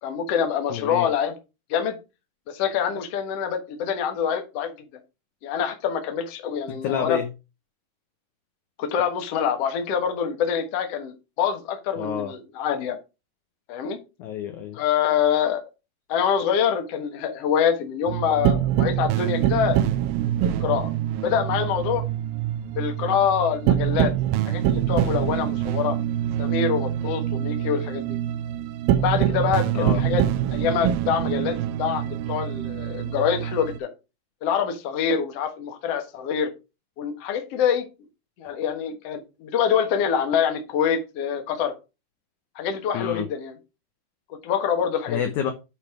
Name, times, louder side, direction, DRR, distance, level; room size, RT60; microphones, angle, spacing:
voice 1, 0.0-1.3 1.7-2.0 2.5-4.7 5.4-7.2 8.8-13.0 13.7-14.0 14.7-15.6 16.1-19.8 20.4-20.9 21.2-22.0 22.7-24.1 24.5-26.0 26.4-28.2 29.0-30.2 30.5-33.9 34.4-36.5 37.0-37.9 38.4-41.7 42.6-43.6 44.3-45.2, left 8 dB, 55° left, 1.9 m, -25 dB
voice 2, 0.7-1.1 6.8-7.3 12.0-12.3 14.2-14.8 29.7-30.0 42.9-43.3 45.1-45.5, left 9 dB, 70° left, 1.9 m, -28 dB
sound 1, 18.1-33.8, right 11 dB, 80° right, 2.3 m, -25 dB
8.8 x 4.1 x 4.8 m
omnidirectional pair, 4.2 m